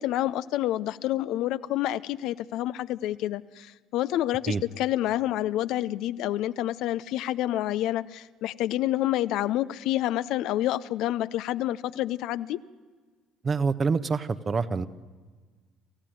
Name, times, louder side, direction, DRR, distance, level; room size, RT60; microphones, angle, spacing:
voice 1, 0.0-12.6, left 14 dB, 65° left, 14 dB, 0.6 m, -28 dB
voice 2, 13.4-14.9, right 4 dB, 35° right, 12 dB, 1.2 m, -26 dB
27.5 x 15.0 x 9.3 m, 1.4 s
hypercardioid pair, 55°, 0 cm